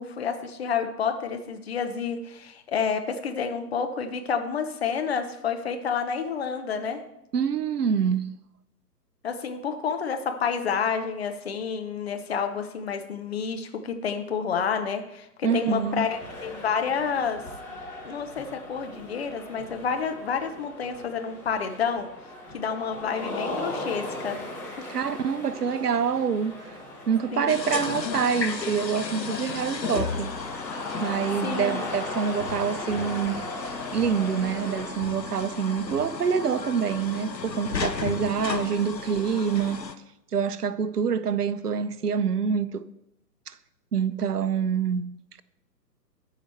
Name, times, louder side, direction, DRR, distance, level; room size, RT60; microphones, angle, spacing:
voice 1, 0.0-7.0 9.2-17.4 18.0-22.1 22.5-24.4 24.8-24.9 27.3-27.6 31.4-32.0, left 6 dB, 40° left, 1.0 m, -29 dB
voice 2, 7.3-8.4 15.4-16.1 24.9-26.8 27.1-30.3 31.0-33.4 33.9-39.8 40.3-42.9 43.5-43.6 43.9-45.4, right 7 dB, 70° right, 0.6 m, -26 dB
sound 1, 15.6-34.9, left 1 dB, 5° left, 1.8 m, -38 dB
sound 2, 27.5-39.9, left 5 dB, 90° left, 0.8 m, -34 dB
13.5 x 4.9 x 4.4 m
figure-of-eight pair, 125°, 49 cm